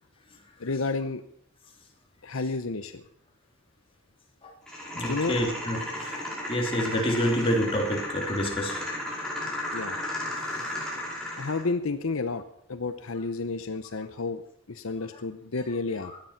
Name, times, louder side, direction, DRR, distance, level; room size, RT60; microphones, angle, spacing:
voice 1, 0.6-1.2 2.2-3.0 5.0-5.4 9.7-10.0 11.4-12.4 12.7-14.4 14.7-16.1, left 3 dB, 75° left, 10 dB, 0.8 m, -31 dB
sound 1, 4.7-11.7, left 1 dB, 5° left, 5.1 m, -34 dB
voice 2, 4.9-6.2 6.5-8.8 16.1-16.2, equal, 25° left, 1 dB, 3.0 m, -28 dB
16.5 x 11.5 x 5.9 m, 0.68 s
head